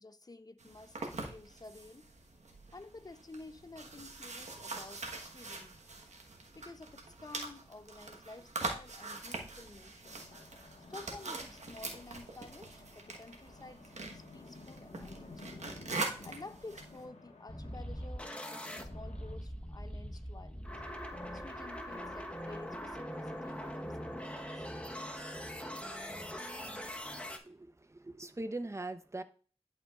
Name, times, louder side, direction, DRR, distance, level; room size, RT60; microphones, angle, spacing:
voice 1, 0.0-2.1 2.7-5.8 6.5-10.2 10.9-15.3 16.2-20.8 21.3-24.7, left 3 dB, 35° left, 0.6 m, -51 dB
sound 1, 0.6-17.0, right 3 dB, 90° right, 1.3 m, -43 dB
sound 2, 10.0-19.4, left 3 dB, 90° left, 1.4 m, -54 dB
sound 3, 17.5-27.4, equal, 10° left, 1.1 m, -42 dB
voice 2, 27.3-29.2, right 2 dB, 25° right, 0.8 m, -41 dB
11.0 x 4.9 x 2.4 m
cardioid pair, 45°, 12 cm